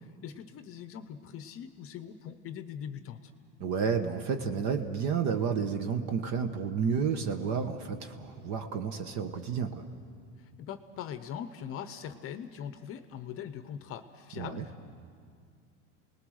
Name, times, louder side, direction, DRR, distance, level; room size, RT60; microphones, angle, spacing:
voice 1, 0.0-3.3 10.4-14.9, left 8 dB, 35° left, 10 dB, 0.8 m, -42 dB
voice 2, 3.6-9.8 14.4-14.6, right 6 dB, 45° right, 7 dB, 1.2 m, -31 dB
29.5 x 19.5 x 6.5 m, 2.2 s
supercardioid pair, 150°, 38 cm